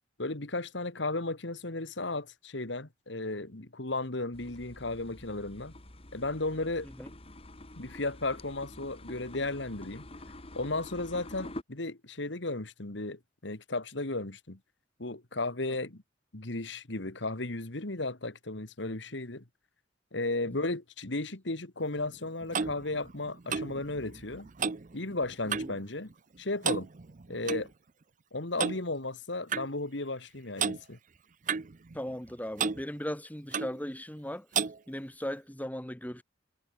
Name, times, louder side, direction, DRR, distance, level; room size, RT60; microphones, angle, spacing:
voice 1, 0.2-5.7 6.1-6.9 7.8-10.0 10.5-14.6 15.0-16.0 16.3-19.4 20.1-24.5 24.9-26.1 26.4-26.9 27.3-27.7 28.3-31.0, left 2 dB, 65° left, 2.1 m, -34 dB
sound 1, 4.3-11.6, left 1 dB, 30° left, 2.3 m, -47 dB
Clock, 22.0-25.8 26.1-26.4 26.6-27.7 28.6-28.8 29.5-29.7 30.6-30.8 31.5-32.3 32.6-32.8 33.5-33.8 34.5-34.8, right 6 dB, 40° right, 0.6 m, -33 dB
voice 2, 31.9-34.5 34.9-36.2, equal, 10° left, 1.9 m, -37 dB
head